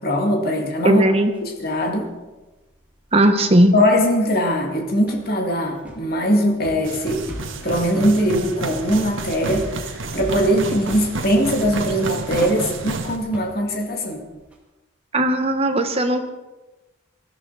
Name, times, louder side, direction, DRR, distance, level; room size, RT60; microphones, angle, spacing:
voice 1, 0.0-1.0 1.4-2.1 3.7-7.2 7.6-14.3, equal, 45° left, 2 dB, 2.2 m, -21 dB
voice 2, 0.8-1.3 3.1-3.7 15.1-16.2, right 1 dB, 30° right, 5 dB, 1.3 m, -17 dB
sound 1, 0.9-1.4 1.6-2.1 2.5-14.5, equal, 5° right, 2.4 m, -37 dB
sound 2, 6.8-13.2, right 3 dB, 65° right, 1.5 m, -30 dB
20.0 x 14.0 x 4.2 m, 1.1 s
head